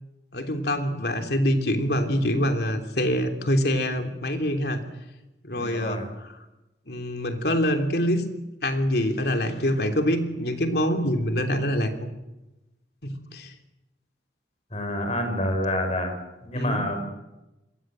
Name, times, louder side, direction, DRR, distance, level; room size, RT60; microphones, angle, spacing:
voice 1, 0.3-4.8 5.4-6.3 6.9-8.3 8.6-12.1 13.0-13.5 16.5-16.8, equal, 60° left, 5 dB, 3.2 m, -25 dB
voice 2, 5.5-6.1 14.7-16.1 16.4-17.0, left 1 dB, 35° left, 6 dB, 6.0 m, -28 dB
27.5 x 22.5 x 7.7 m, 0.98 s
head